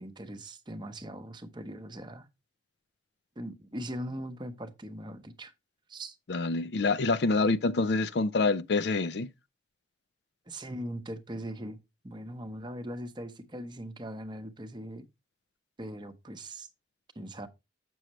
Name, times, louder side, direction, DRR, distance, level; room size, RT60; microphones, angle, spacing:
voice 1, 0.0-2.3 3.4-5.5 5.9-6.2 10.5-11.8 12.0-15.0 15.8-16.7 17.2-17.5, right 1 dB, 25° right, 0.8 m, -40 dB
voice 2, 6.3-9.3, left 3 dB, 65° left, 0.5 m, -26 dB
7.7 x 6.2 x 3.0 m
head